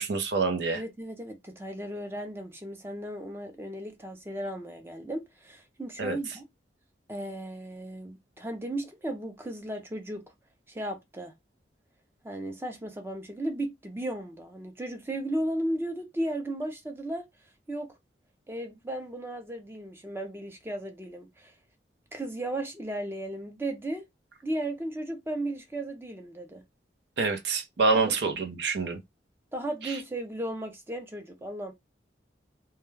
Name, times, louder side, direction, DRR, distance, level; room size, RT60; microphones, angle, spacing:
voice 1, 0.0-0.8 6.0-6.2 27.2-29.0 29.8-30.0, right 4 dB, 75° right, 0.6 m, -27 dB
voice 2, 0.7-6.4 7.1-10.3 10.7-11.3 12.2-17.2 17.7-17.9 18.5-21.5 22.1-24.0 24.4-26.6 27.9-28.2 29.5-31.7, right 1 dB, 15° right, 0.5 m, -35 dB
2.3 x 2.2 x 3.1 m
head